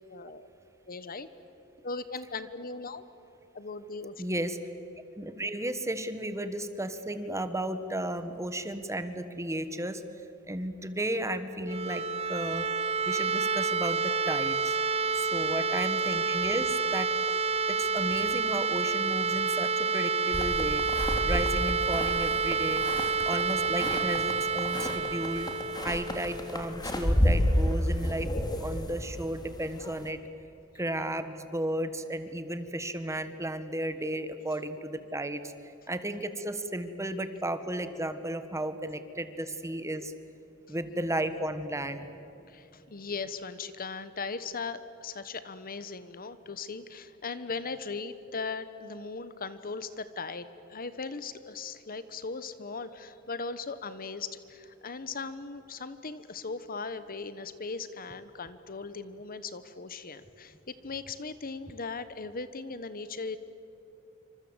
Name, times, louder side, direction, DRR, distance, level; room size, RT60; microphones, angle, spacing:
voice 1, 0.1-0.5 0.9-1.3 1.8-3.0 3.5-4.5 15.6-15.7 42.5-63.4, left 4 dB, 45° left, 13 dB, 1.2 m, -38 dB
voice 2, 4.2-4.6 5.2-10.0 10.5-12.6 13.0-14.8 15.1-17.1 17.7-20.8 21.3-22.8 23.3-25.5 25.8-28.3 28.6-30.2 30.7-35.5 35.9-40.1 40.7-42.1, right 1 dB, 15° right, 10 dB, 1.4 m, -34 dB
sound 1, 11.6-27.3, right 5 dB, 30° right, 0.9 m, -29 dB
sound 2, 20.3-30.1, equal, 20° left, 2.7 m, -31 dB
28.0 x 26.0 x 8.1 m, 2.9 s
head